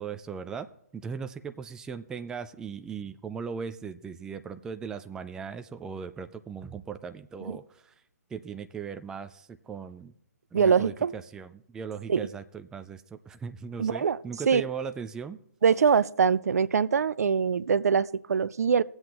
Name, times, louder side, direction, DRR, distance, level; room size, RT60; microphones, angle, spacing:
voice 1, 0.0-7.9 8.3-10.1 10.5-15.4, right 6 dB, 5° right, 10 dB, 0.4 m, -38 dB
voice 2, 10.5-11.1 12.1-12.3 13.8-14.2 14.5-14.6 15.6-18.8, right 6 dB, 65° right, 18 dB, 0.5 m, -23 dB
19.5 x 7.9 x 3.0 m, 0.69 s
figure-of-eight pair, 135°, 9 cm